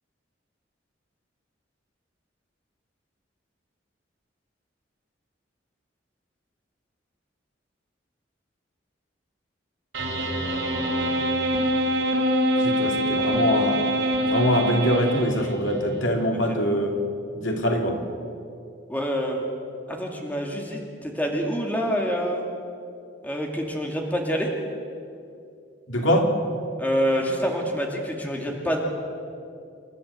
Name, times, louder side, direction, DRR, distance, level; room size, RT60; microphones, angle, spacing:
sound 1, 9.9-15.7, equal, 90° right, 4.0 m, -24 dB
voice 1, 12.6-13.8 14.2-17.0 17.3-18.0 25.9-26.3, equal, 90° left, 2 dB, 2.8 m, -23 dB
voice 2, 18.9-19.5 19.9-22.4 23.2-24.5 26.8-28.8, equal, 10° left, 1 dB, 2.5 m, -26 dB
28.0 x 12.5 x 8.1 m, 2.4 s
head